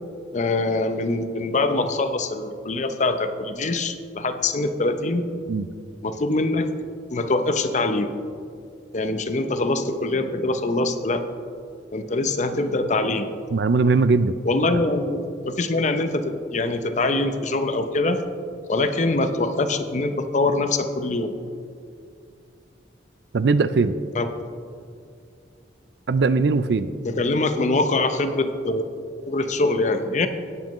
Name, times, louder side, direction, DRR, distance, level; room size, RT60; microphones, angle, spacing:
voice 1, 0.3-5.3 6.0-6.7 7.1-8.1 8.9-11.3 11.9-13.3 14.4-18.2 18.7-21.4 24.1-24.4 27.0-28.9 29.2-30.3, left 2 dB, 40° left, 8 dB, 0.6 m, -23 dB
voice 2, 13.5-14.3 23.3-23.9 26.1-26.9, right 4 dB, 65° right, 13 dB, 0.4 m, -19 dB
17.5 x 7.5 x 3.1 m, 2.3 s
head